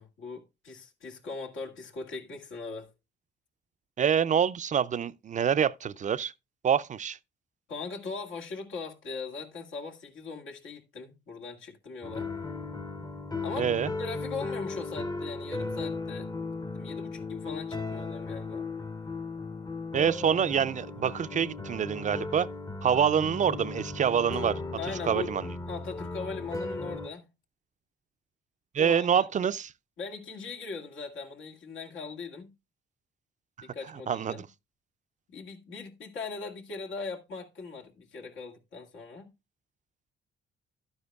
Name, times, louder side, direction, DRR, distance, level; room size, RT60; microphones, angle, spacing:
voice 1, 0.0-2.9 7.7-12.3 13.4-13.7 14.0-16.3 16.7-18.7 24.8-25.3 25.7-27.2 28.8-29.3 30.0-32.5 33.6-34.5 35.3-39.3, left 4 dB, 85° left, 2.0 m, -40 dB
voice 2, 4.0-6.3 6.6-7.2 13.6-13.9 19.9-22.5 22.8-24.6 25.1-25.5 28.7-29.7 34.1-34.4, right 8 dB, 40° right, 0.4 m, -26 dB
sound 1, 12.0-27.1, left 3 dB, 20° left, 0.7 m, -36 dB
11.5 x 9.6 x 2.3 m
cardioid pair, 90°, 20 cm